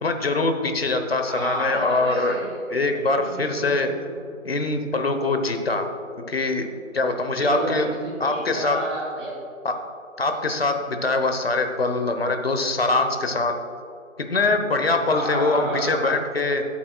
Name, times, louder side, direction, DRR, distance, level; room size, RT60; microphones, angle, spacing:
voice 1, 0.0-2.4 2.7-3.9 4.4-5.9 6.3-7.9 8.2-8.8 9.6-9.7 10.2-13.6 14.2-16.7, left 3 dB, 45° left, 6 dB, 1.0 m, -23 dB
voice 2, 1.2-4.2 7.4-9.3 15.0-16.1, right 1 dB, 20° right, -7 dB, 2.4 m, -32 dB
17.5 x 8.5 x 2.3 m, 2.5 s
hypercardioid pair, 180°, 41 cm